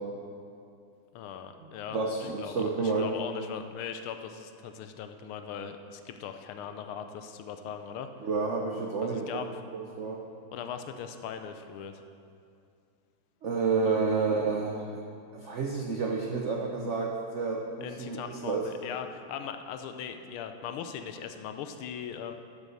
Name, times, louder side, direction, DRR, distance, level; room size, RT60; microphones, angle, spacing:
voice 1, 1.1-8.3 9.0-9.5 10.5-12.0 13.8-14.1 17.8-22.3, left 8 dB, 85° left, 7 dB, 1.5 m, -39 dB
voice 2, 1.9-3.1 8.2-9.4 9.7-10.2 13.4-15.0 15.3-18.7, right 4 dB, 85° right, 0 dB, 0.6 m, -30 dB
12.0 x 5.3 x 6.3 m, 2.5 s
omnidirectional pair, 2.3 m